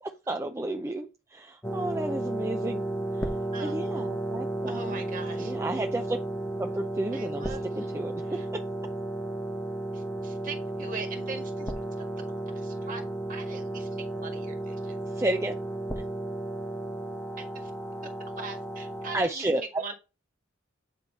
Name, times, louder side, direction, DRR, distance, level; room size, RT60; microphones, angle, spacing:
voice 1, 0.0-2.8 3.2-3.3 3.6-5.0 5.4-6.2 6.6-8.1 8.5-8.6 15.1-15.6 16.0-16.1 19.1-19.9, right 1 dB, 15° right, 0.4 m, -32 dB
sound 1, 1.6-19.2, right 1 dB, 10° left, 0.9 m, -33 dB
voice 2, 4.7-5.5 7.1-7.9 8.3-8.5 9.9-11.7 12.6-13.0 13.3-15.0 17.4-17.7 18.0-19.9, right 4 dB, 40° right, 1.7 m, -41 dB
8.8 x 3.1 x 5.3 m
head